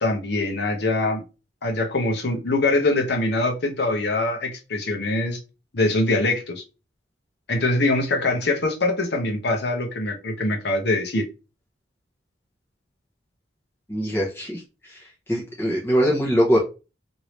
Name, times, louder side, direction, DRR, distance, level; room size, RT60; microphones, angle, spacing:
voice 1, 0.0-1.2 1.6-5.4 5.7-6.6 7.5-11.3, left 2 dB, 60° left, 0.8 m, -23 dB
voice 2, 13.9-16.6, equal, 10° left, 0.8 m, -23 dB
3.1 x 2.7 x 3.1 m
head